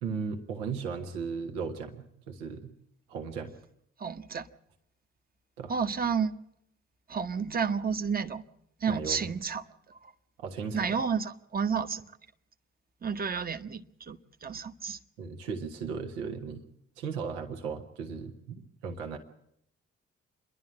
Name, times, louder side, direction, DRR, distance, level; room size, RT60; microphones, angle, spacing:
voice 1, 0.0-2.7 3.1-3.5 5.6-5.7 8.9-9.2 10.4-11.0 15.2-16.6 17.0-19.2, right 5 dB, 80° right, 1.4 m, -36 dB
voice 2, 4.0-4.5 5.7-6.4 7.1-8.4 8.8-9.6 9.9-10.1 10.7-12.1 13.0-15.0, right 6 dB, 30° right, 1.1 m, -31 dB
27.0 x 11.5 x 8.7 m
hypercardioid pair, 45°, 32 cm